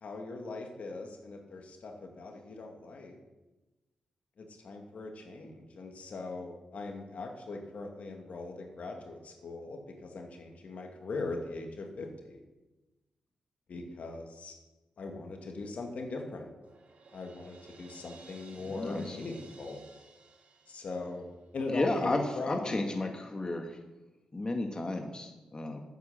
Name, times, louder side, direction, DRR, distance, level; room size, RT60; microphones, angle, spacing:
voice 1, 0.0-3.2 4.4-12.4 13.7-14.5 15.0-16.5 17.1-19.8 20.7-21.3 21.5-22.8, left 3 dB, 65° left, 3 dB, 2.2 m, -40 dB
Crash cymbal, 16.6-21.6, right 4 dB, 70° right, 2.3 m, -56 dB
voice 2, 18.6-19.2 21.7-23.8 24.3-25.8, left 2 dB, 30° left, 4 dB, 1.5 m, -33 dB
9.2 x 8.5 x 7.6 m, 1.1 s
supercardioid pair, 50°, 3 cm